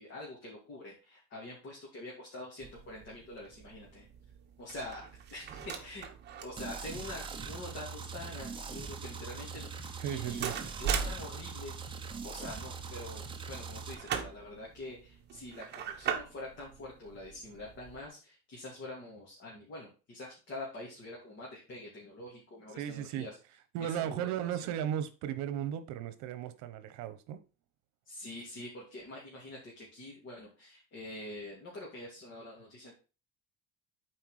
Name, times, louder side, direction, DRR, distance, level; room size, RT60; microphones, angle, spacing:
voice 1, 0.0-4.1 4.6-5.0 5.3-6.1 6.4-10.5 10.8-23.4 23.8-24.7 28.1-33.0, left 1 dB, 40° left, 2.6 m, -45 dB
sound 1, 2.6-18.1, right 7 dB, 35° right, 1.2 m, -42 dB
sound 2, 6.6-13.9, right 5 dB, 15° right, 0.7 m, -42 dB
voice 2, 10.0-10.5 22.8-23.3 23.7-27.4, right 10 dB, 65° right, 1.1 m, -35 dB
7.9 x 4.7 x 4.9 m
cardioid pair, 165°, 31 cm